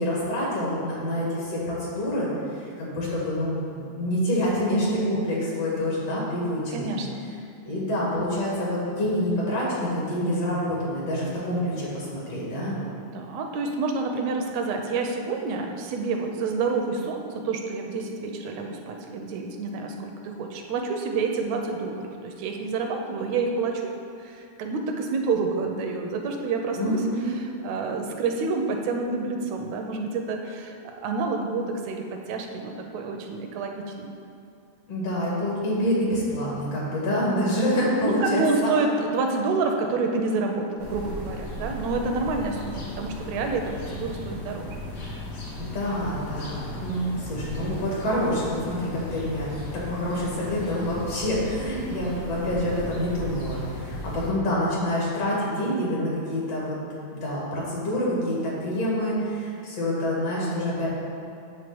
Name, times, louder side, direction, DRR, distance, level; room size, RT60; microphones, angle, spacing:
voice 1, 0.0-2.3 2.8-6.9 7.7-12.8 26.8-27.3 34.9-38.7 45.6-56.8 57.1-60.9, equal, 55° left, -6 dB, 2.9 m, -27 dB
voice 2, 6.7-7.2 12.5-23.9 24.2-27.0 27.4-34.1 38.0-44.7, right 4 dB, 80° right, 3 dB, 1.9 m, -28 dB
sound 1, 40.8-54.3, left 1 dB, 70° left, 2.8 m, -36 dB
9.2 x 3.6 x 7.0 m, 2.6 s
omnidirectional pair, 3.4 m